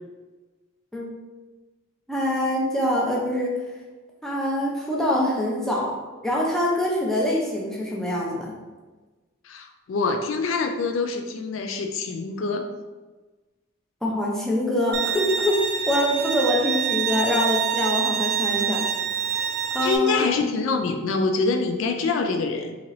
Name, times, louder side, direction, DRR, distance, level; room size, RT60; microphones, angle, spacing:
voice 1, 2.1-3.6 4.2-6.0 6.2-8.5 14.0-18.9 19.7-20.4, left 1 dB, ahead, -4 dB, 0.6 m, -24 dB
voice 2, 9.4-12.7 19.8-22.7, left 4 dB, 70° left, 5 dB, 0.3 m, -25 dB
Bowed string instrument, 14.9-20.0, right 8 dB, 50° right, 0.4 m, -26 dB
3.7 x 2.8 x 3.1 m, 1.2 s
head